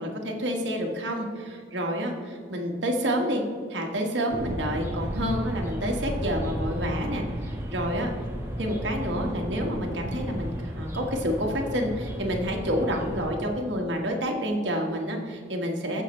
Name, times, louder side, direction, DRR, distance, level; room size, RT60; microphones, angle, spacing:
voice 1, 0.0-3.4 3.7-8.1 8.6-16.0, equal, 85° right, 1 dB, 1.6 m, -29 dB
sound 1, 4.3-13.3, equal, 15° right, 1.3 m, -33 dB
15.0 x 5.7 x 3.2 m, 2.1 s
head